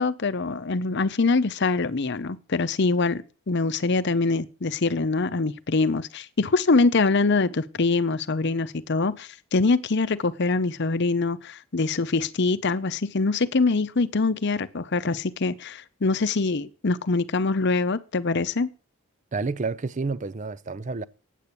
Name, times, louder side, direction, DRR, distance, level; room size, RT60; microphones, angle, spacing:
voice 1, 0.0-18.7, left 3 dB, 55° left, 0.7 m, -24 dB
voice 2, 19.3-21.0, right 4 dB, 35° right, 0.5 m, -29 dB
9.2 x 8.3 x 8.5 m
head